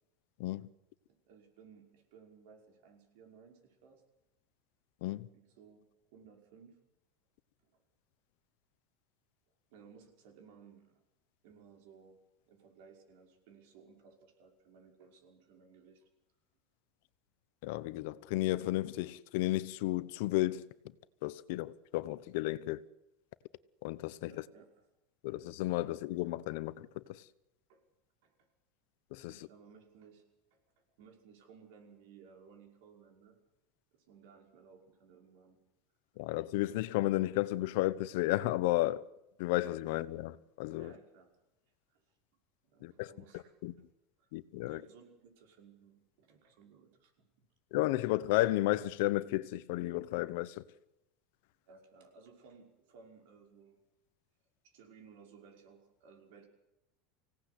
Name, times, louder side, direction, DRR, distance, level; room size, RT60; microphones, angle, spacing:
voice 1, 1.1-4.0 5.3-6.8 7.7-7.8 9.7-11.0 11.4-12.2 12.5-16.1 24.2-24.9 27.7-27.8 28.2-28.3 29.3-30.2 31.0-33.4 33.9-35.6 40.8-41.3 41.9-42.0 42.7-43.5 44.2-44.3 44.6-47.5 51.6-53.8 54.6-56.5, right 6 dB, 60° right, 5.6 m, -59 dB
voice 2, 17.6-20.6 21.2-22.8 23.8-24.3 25.2-27.2 29.1-29.3 36.2-39.0 39.4-40.9 42.8-43.1 43.6-43.7 44.3-44.8 47.7-50.6, left 17 dB, 60° left, 0.9 m, -33 dB
25.5 x 17.5 x 8.4 m
supercardioid pair, 180°, 0 cm